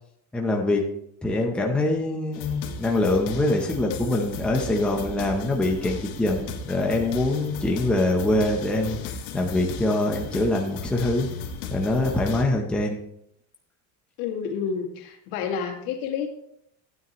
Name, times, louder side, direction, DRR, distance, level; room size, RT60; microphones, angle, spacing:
voice 1, 0.3-0.8 1.2-9.0 9.3-11.3 11.7-13.0, left 2 dB, 5° left, 0 dB, 0.7 m, -24 dB
sound 1, 2.3-12.4, left 4 dB, 90° left, 1.6 m, -36 dB
voice 2, 14.2-16.3, left 7 dB, 70° left, 1 dB, 2.1 m, -29 dB
12.5 x 9.6 x 3.0 m, 0.73 s
cardioid pair, 175°, 36 cm